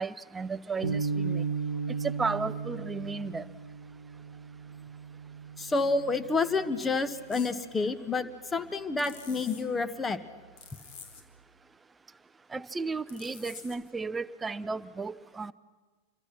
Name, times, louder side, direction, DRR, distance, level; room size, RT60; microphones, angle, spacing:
voice 1, 0.0-1.4 2.0-3.4 12.5-15.5, right 4 dB, 15° right, 16 dB, 0.6 m, -34 dB
sound 1, 0.8-7.3, right 5 dB, 75° right, 1.1 m, -36 dB
voice 2, 5.6-10.2, left 3 dB, 15° left, 13 dB, 1.2 m, -29 dB
sound 2, 7.3-7.5 9.0-9.6 10.6-11.2 13.1-13.8, left 6 dB, 45° left, 2.5 m, -48 dB
27.0 x 23.5 x 6.0 m, 1.4 s
figure-of-eight pair, 90°, 0 cm